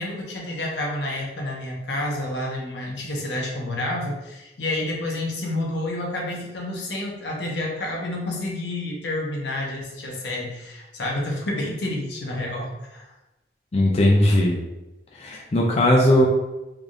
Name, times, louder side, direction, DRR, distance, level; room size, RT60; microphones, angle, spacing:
voice 1, 0.0-13.0, left 1 dB, 85° left, -2 dB, 1.0 m, -29 dB
voice 2, 13.7-14.6 15.2-16.3, left 1 dB, 35° left, -1 dB, 0.4 m, -18 dB
3.6 x 3.5 x 2.6 m, 0.99 s
head